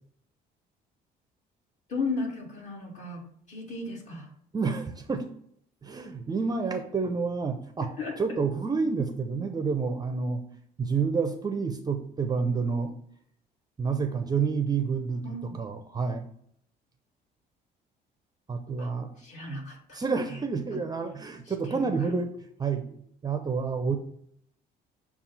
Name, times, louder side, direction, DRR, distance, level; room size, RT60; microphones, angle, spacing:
voice 1, 1.9-3.2 3.5-4.3 8.0-8.2 15.2-15.6 18.8-18.9 19.2-20.0 20.3-20.4 20.7-20.8 21.6-22.1, left 3 dB, 45° left, -2 dB, 2.3 m, -35 dB
voice 2, 4.5-5.2 5.8-7.9 8.2-10.4 10.8-12.9 13.8-16.3 18.5-19.2 19.9-22.3 22.6-24.0, right 5 dB, 25° right, 6 dB, 0.5 m, -29 dB
7.1 x 2.4 x 5.4 m, 0.68 s
cardioid pair, 110°, 17 cm